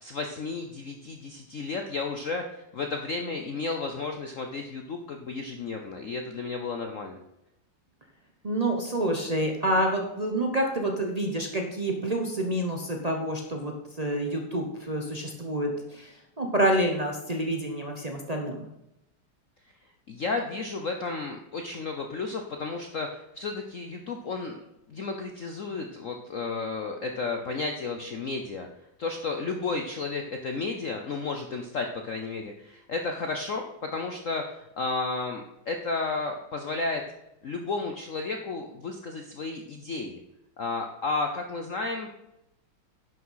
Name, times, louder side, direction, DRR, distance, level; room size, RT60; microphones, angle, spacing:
voice 1, 0.0-7.2 20.1-24.6 24.9-28.7 29.0-37.0 37.4-40.2 40.6-42.1, left 3 dB, 70° left, 4 dB, 0.7 m, -32 dB
voice 2, 8.4-18.7, right 1 dB, 65° right, 0 dB, 0.4 m, -28 dB
10.5 x 6.1 x 5.6 m, 0.88 s
omnidirectional pair, 2.4 m